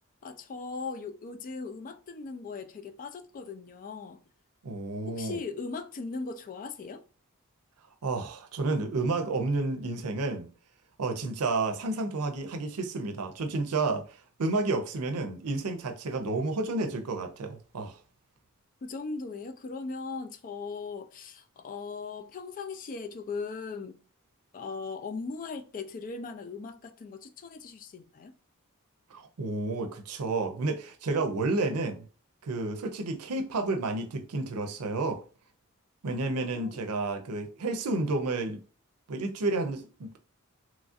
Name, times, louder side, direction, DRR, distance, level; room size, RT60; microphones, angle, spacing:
voice 1, 0.2-4.2 5.1-7.0 18.8-24.0 24.5-28.3 36.4-36.8, left 4 dB, 40° left, 0.3 m, -39 dB
voice 2, 4.6-5.4 8.0-10.5 11.0-14.0 14.4-17.9 29.1-32.1 32.4-35.2 36.0-38.6 39.1-40.1, right 3 dB, 85° right, 0.6 m, -30 dB
3.1 x 2.4 x 2.5 m
head